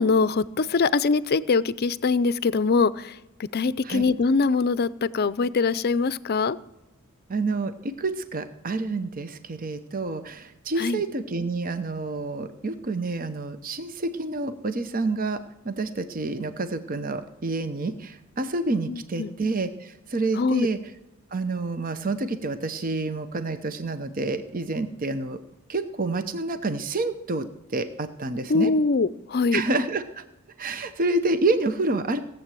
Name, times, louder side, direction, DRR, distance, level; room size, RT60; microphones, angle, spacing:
voice 1, 0.0-3.2 3.5-6.6 10.8-11.0 18.9-19.3 20.4-20.7 28.5-29.6, left 4 dB, 50° left, 17 dB, 0.5 m, -23 dB
voice 2, 7.3-15.4 15.6-20.8 21.3-25.4 25.7-27.5 27.7-28.7 29.5-30.2 30.6-32.2, right 3 dB, 40° right, 10 dB, 0.8 m, -28 dB
17.5 x 7.6 x 7.5 m, 0.97 s
head